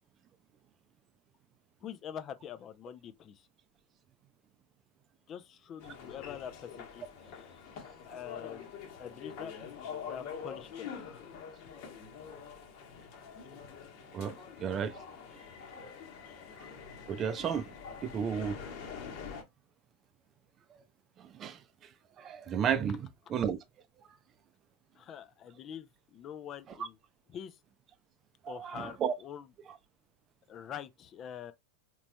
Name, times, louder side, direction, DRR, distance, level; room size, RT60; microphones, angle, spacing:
voice 1, 1.8-3.5 5.3-7.5 8.1-8.7 9.0-11.1 14.3-14.5 24.9-27.0 27.3-27.6 28.5-29.5 30.5-31.5, left 9 dB, 35° left, 0.5 m, -45 dB
sound 1, 5.8-19.4, left 6 dB, 50° left, 1.1 m, -45 dB
voice 2, 14.1-15.0 17.1-17.7 18.0-18.6 21.2-21.6 22.2-23.0 23.3-23.6 28.4-29.1, right 8 dB, 30° right, 0.5 m, -32 dB
4.0 x 3.0 x 2.2 m
figure-of-eight pair, 90°, 0 cm